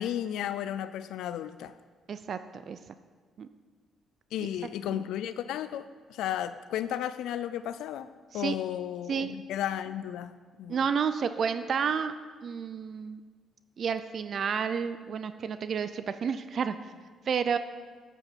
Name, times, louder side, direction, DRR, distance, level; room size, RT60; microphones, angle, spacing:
voice 1, 0.0-1.7 4.3-8.1 8.3-10.9, left 11 dB, 85° left, 13 dB, 0.3 m, -34 dB
voice 2, 2.1-2.8 3.4-3.5 4.9-5.0 8.3-8.5 9.1-9.3 10.7-12.1 12.4-13.2 13.8-16.8 17.3-17.6, right 6 dB, 55° right, 11 dB, 0.4 m, -30 dB
8.9 x 8.3 x 5.9 m, 1.5 s
cardioid pair, 90°, 0 cm